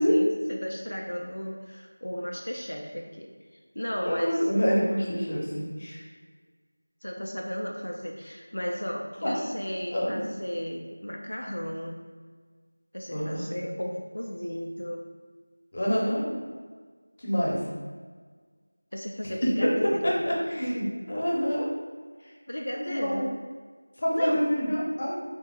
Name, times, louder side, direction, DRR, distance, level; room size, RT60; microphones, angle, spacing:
voice 1, 0.0-3.3 3.7-4.4 7.0-12.0 12.9-15.1 18.9-20.2 22.5-23.3 24.1-24.4, equal, 80° left, 0 dB, 0.5 m, -34 dB
voice 2, 4.1-6.0 9.2-9.4 9.9-10.2 13.1-13.4 15.7-16.3 17.2-17.6 19.2-21.7 22.2-22.3 22.9-23.2 24.0-25.2, equal, 35° left, -4 dB, 0.8 m, -26 dB
4.4 x 3.7 x 2.3 m, 1.5 s
figure-of-eight pair, 175°, 0 cm